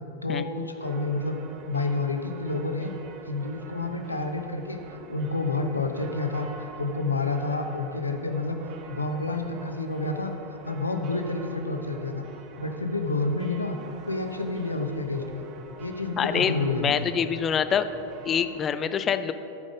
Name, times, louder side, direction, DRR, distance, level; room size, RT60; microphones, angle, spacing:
voice 1, 0.2-1.4 1.7-2.9 3.3-8.6 8.9-10.3 10.6-12.2 12.6-13.8 14.1-15.5 15.8-17.1, left 3 dB, 80° left, 5 dB, 0.7 m, -29 dB
sound 1, 0.8-18.7, right 5 dB, 40° right, 0.7 m, -46 dB
voice 2, 16.2-16.5 16.8-17.9 18.2-19.3, left 8 dB, 25° left, 11 dB, 0.4 m, -25 dB
13.5 x 5.1 x 5.1 m, 3.0 s
figure-of-eight pair, 90°, 0 cm